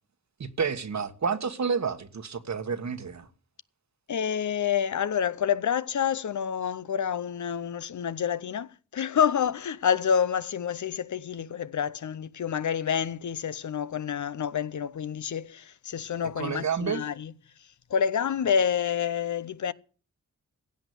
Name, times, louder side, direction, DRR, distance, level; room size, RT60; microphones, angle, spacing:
voice 1, 0.4-3.3 16.4-17.0, right 6 dB, 60° right, 1.5 m, -30 dB
voice 2, 4.1-17.3 17.9-19.7, left 8 dB, 65° left, 0.7 m, -28 dB
16.0 x 8.2 x 7.9 m
cardioid pair, 65°, 31 cm